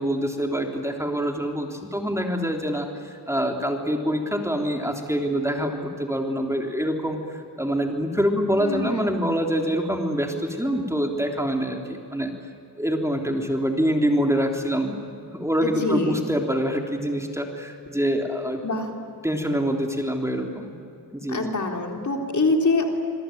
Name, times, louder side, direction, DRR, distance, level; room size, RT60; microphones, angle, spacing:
voice 1, 0.0-12.3 12.8-15.0 15.3-18.6 19.2-20.7 21.1-21.5, equal, 5° right, 2 dB, 3.4 m, -25 dB
voice 2, 8.6-9.2 15.6-16.2 18.6-18.9 21.3-22.8, left 3 dB, 45° left, 2 dB, 3.8 m, -24 dB
27.0 x 22.5 x 9.3 m, 2.7 s
cardioid pair, 85°, 40 cm